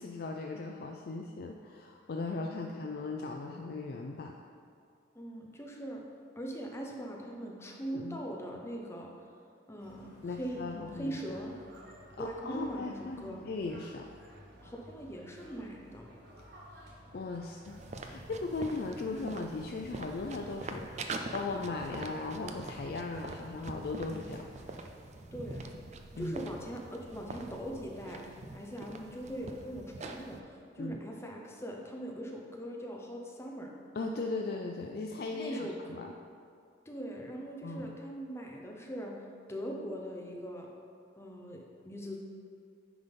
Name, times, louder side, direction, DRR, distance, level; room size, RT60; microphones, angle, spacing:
voice 1, 0.0-4.3 7.9-8.2 10.2-11.2 12.2-14.1 17.1-24.5 26.2-26.4 30.8-31.0 34.0-36.1 37.6-38.0, left 3 dB, 55° left, 2 dB, 0.4 m, -38 dB
voice 2, 5.1-6.0 6.4-9.1 9.7-11.5 12.2-13.4 14.6-16.1 25.3-25.6 26.2-33.7 35.3-36.0 36.9-40.7 41.2-42.2, equal, 15° left, 0 dB, 0.8 m, -41 dB
sound 1, 9.8-24.8, equal, 60° right, 1.5 m, -55 dB
sound 2, 17.6-30.4, right 3 dB, 35° right, 0.4 m, -44 dB
9.5 x 3.6 x 5.3 m, 2.3 s
head